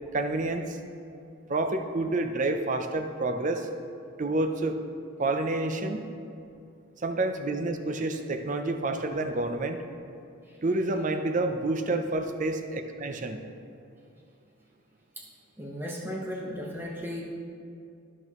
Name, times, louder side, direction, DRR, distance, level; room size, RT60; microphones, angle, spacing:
voice 1, 0.1-0.8 1.5-3.7 4.2-4.8 5.2-6.0 7.0-9.8 10.6-13.4, right 2 dB, 35° right, 6 dB, 0.5 m, -28 dB
voice 2, 15.6-17.3, equal, 10° right, -2 dB, 1.0 m, -36 dB
13.0 x 6.0 x 3.0 m, 2.5 s
head